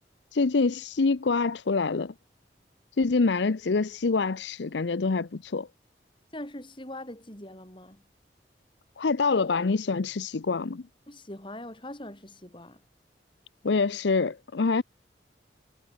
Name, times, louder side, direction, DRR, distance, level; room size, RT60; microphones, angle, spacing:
voice 1, 0.3-2.1 3.0-5.7 9.0-10.8 13.6-14.8, left 4 dB, 80° left, 0.6 m, -25 dB
voice 2, 6.3-8.0 11.1-12.8, left 1 dB, 30° left, 4.6 m, -42 dB
head